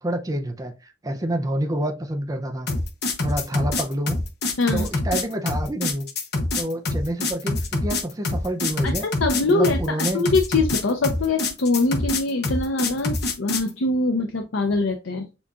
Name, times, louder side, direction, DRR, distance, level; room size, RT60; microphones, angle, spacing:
voice 1, 0.0-2.7 3.2-4.2 4.7-6.1 6.5-9.1 9.5-10.2, right 1 dB, 20° right, 4 dB, 0.5 m, -28 dB
sound 1, 2.7-13.7, left 2 dB, 55° left, 0.9 m, -25 dB
voice 2, 8.8-9.8 10.1-15.3, left 3 dB, 85° left, 5 dB, 0.6 m, -23 dB
6.9 x 2.8 x 2.4 m, 0.29 s
head